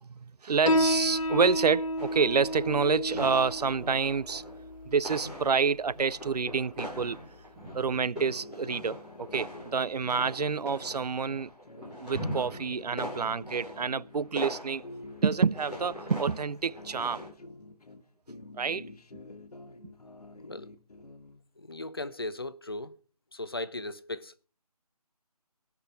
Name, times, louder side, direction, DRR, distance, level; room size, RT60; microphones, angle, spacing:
voice 1, 0.0-4.4 4.9-7.2 7.7-11.5 12.0-14.8 15.2-17.3 18.6-18.9 19.1-19.2, right 5 dB, 80° right, 0.5 m, -28 dB
Piano, 0.7-7.7, equal, 55° left, 1.0 m, -32 dB
sound 1, 2.0-2.9 3.1-4.7 5.0-17.3, equal, 5° right, 1.5 m, -42 dB
sound 2, 7.8-14.3 14.7-18.0 18.3-21.4, left 2 dB, 70° left, 1.5 m, -48 dB
voice 2, 21.6-23.0 23.3-24.5, left 2 dB, 40° left, 0.5 m, -37 dB
16.5 x 6.0 x 5.6 m
figure-of-eight pair, 175°, 20 cm